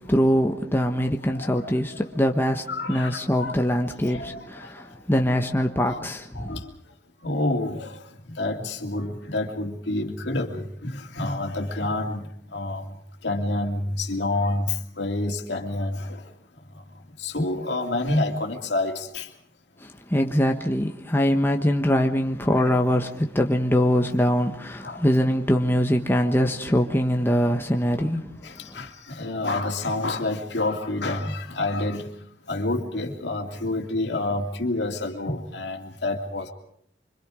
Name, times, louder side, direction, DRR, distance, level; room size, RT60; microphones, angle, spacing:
voice 1, 0.1-6.5 19.8-28.3 28.7-28.8, equal, 15° left, 1.3 m, -23 dB
voice 2, 1.3-1.7 2.7-3.5 4.0-4.5 5.9-6.0 6.3-6.7 7.2-8.0 8.3-12.9 13.2-16.3 16.7-16.8 17.2-19.3 24.8-25.0 28.4-32.1 32.5-36.5, left 2 dB, 70° left, 2.7 m, -28 dB
25.5 x 25.5 x 5.0 m
head